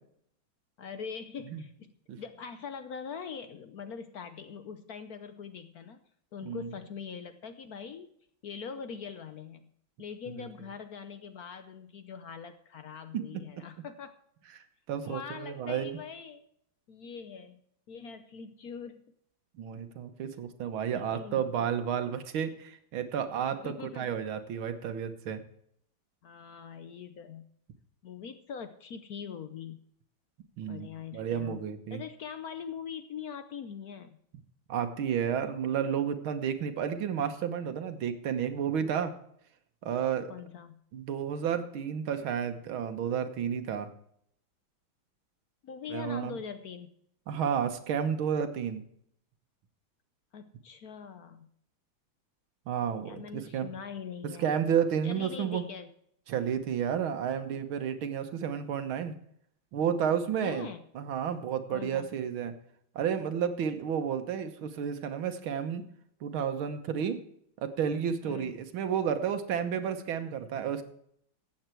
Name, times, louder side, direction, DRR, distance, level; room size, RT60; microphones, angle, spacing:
voice 1, 0.8-6.0 6.3-8.1 8.4-9.7 10.0-14.2 15.0-16.4 16.9-17.6 17.9-19.0 20.9-21.7 23.5-24.2 26.2-27.5 28.0-29.8 30.7-31.6 31.9-34.2 35.4-35.7 40.3-40.8 45.6-46.9 50.3-51.5 53.0-54.6 55.0-55.9 60.4-60.8 61.7-62.1 68.2-68.5, left 6 dB, 60° left, 10 dB, 1.1 m, -42 dB
voice 2, 14.9-16.0 19.6-25.4 30.6-30.9 31.1-32.0 34.7-39.1 39.8-40.3 40.9-43.9 45.9-46.4 47.3-48.8 52.7-53.7 54.4-55.7 56.3-59.2 59.7-60.7 61.0-62.5 63.0-65.8 66.2-67.2 67.6-70.8, right 8 dB, 90° right, 8 dB, 2.0 m, -31 dB
14.5 x 8.7 x 4.5 m, 0.68 s
omnidirectional pair, 2.2 m